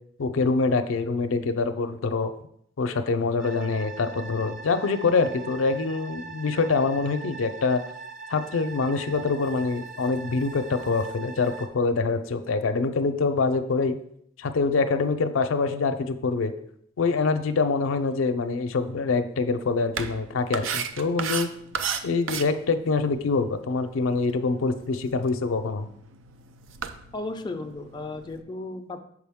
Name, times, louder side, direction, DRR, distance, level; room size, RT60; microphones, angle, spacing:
voice 1, 0.2-2.3 2.8-7.8 8.3-14.0 14.4-16.5 17.0-21.5 22.0-25.9, left 4 dB, 80° left, 9 dB, 0.5 m, -25 dB
sound 1, 3.4-11.7, right 4 dB, 45° right, 0.8 m, -41 dB
sound 2, 19.9-28.4, right 7 dB, 70° right, 0.5 m, -36 dB
voice 2, 27.1-29.0, left 2 dB, 20° left, 4 dB, 0.4 m, -34 dB
6.1 x 4.8 x 3.5 m, 0.69 s
head